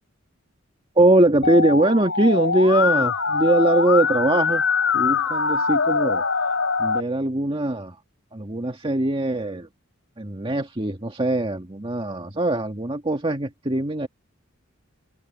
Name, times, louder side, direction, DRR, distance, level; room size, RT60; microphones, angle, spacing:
voice 1, 1.0-4.6 4.9-6.2 6.8-8.0 8.3-9.7 10.2-14.1, right 1 dB, 25° right, 1.9 m, -21 dB
Musical instrument, 1.4-7.0, left 5 dB, 70° left, 2.8 m, -23 dB
open air
head